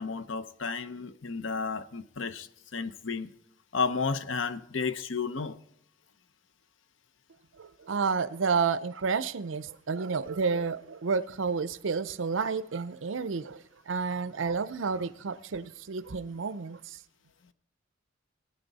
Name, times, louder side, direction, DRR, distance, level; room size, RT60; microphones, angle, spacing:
voice 1, 0.0-3.3 3.7-5.6, left 5 dB, 70° left, 0.7 m, -32 dB
voice 2, 7.6-17.0, right 5 dB, 75° right, 0.6 m, -30 dB
19.0 x 9.4 x 4.1 m
head